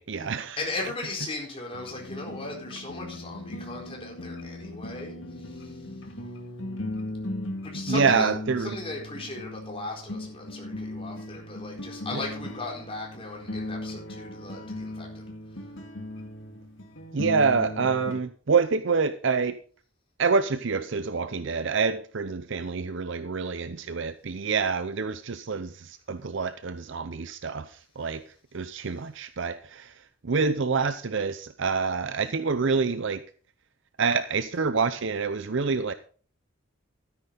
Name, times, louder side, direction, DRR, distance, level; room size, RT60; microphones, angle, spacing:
voice 1, 0.0-0.6 7.9-8.8 12.1-12.2 17.1-19.5 20.2-28.2 28.5-33.2 34.0-35.9, right 5 dB, 65° right, 12 dB, 0.6 m, -27 dB
voice 2, 0.6-5.9 7.6-8.3 8.6-15.2, left 2 dB, 30° left, -1 dB, 4.3 m, -37 dB
sound 1, 1.7-18.2, left 1 dB, 65° left, 2.1 m, -37 dB
13.0 x 10.0 x 4.0 m, 0.42 s
head